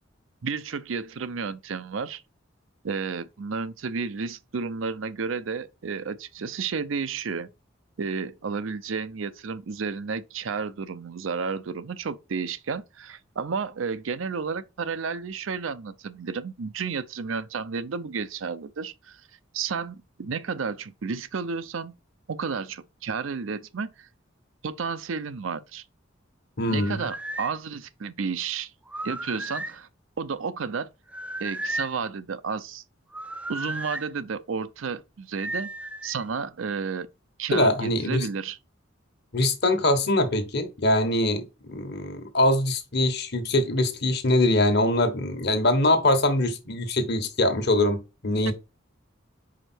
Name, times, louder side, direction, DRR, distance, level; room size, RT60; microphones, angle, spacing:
voice 1, 0.4-2.2 2.8-7.5 8.0-19.2 19.5-21.9 22.3-24.1 24.6-25.8 26.7-28.7 29.0-29.9 30.2-30.9 31.4-32.8 33.5-35.7 36.0-37.1 37.4-38.6 48.5-48.6, right 5 dB, 80° right, 0.5 m, -32 dB
voice 2, 26.6-27.0 37.5-38.3 39.3-48.5, left 1 dB, 55° left, 1.3 m, -23 dB
sound 1, 26.7-27.5 28.9-29.8 31.1-32.0 33.1-34.1 35.4-36.2, right 1 dB, 5° right, 0.3 m, -34 dB
4.9 x 4.4 x 4.4 m
head